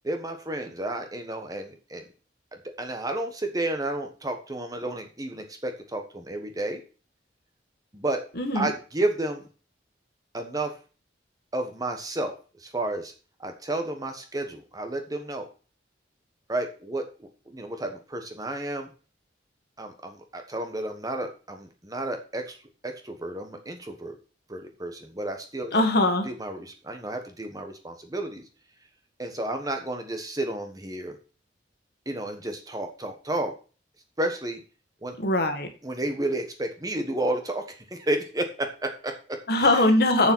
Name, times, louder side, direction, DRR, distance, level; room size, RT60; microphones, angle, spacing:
voice 1, 0.0-2.0 2.8-6.8 7.9-8.2 8.5-9.4 10.3-10.7 11.5-12.3 12.6-13.1 13.4-15.5 16.5-18.9 19.8-22.6 22.8-24.2 24.5-25.8 26.2-28.4 29.2-31.1 32.1-33.5 34.2-34.6 35.0-35.1 35.8-37.6 37.9-39.4, right 1 dB, 20° right, 5 dB, 1.3 m, -31 dB
voice 2, 8.3-8.7 25.7-26.3 35.2-35.7 39.5-40.3, left 1 dB, 55° left, 6 dB, 1.6 m, -21 dB
7.2 x 6.7 x 6.1 m, 0.36 s
head